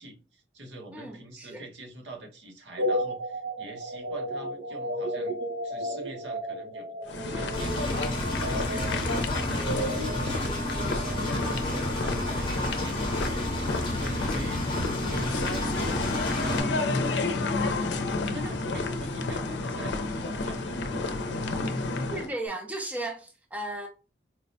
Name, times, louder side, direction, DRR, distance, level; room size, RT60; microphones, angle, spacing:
voice 1, 0.0-5.4 5.6-7.9 8.4-14.6 15.3-17.4 18.3-21.3, right 2 dB, 85° right, 1.0 m, -45 dB
voice 2, 0.9-1.6 22.1-23.9, right 1 dB, 10° right, 0.4 m, -35 dB
sound 1, 2.8-11.9, equal, 70° right, 0.5 m, -34 dB
sound 2, 7.1-22.3, left 3 dB, 80° left, 0.5 m, -30 dB
Engine, 7.5-16.6, left 1 dB, 30° left, 0.8 m, -32 dB
4.4 x 2.1 x 2.6 m
head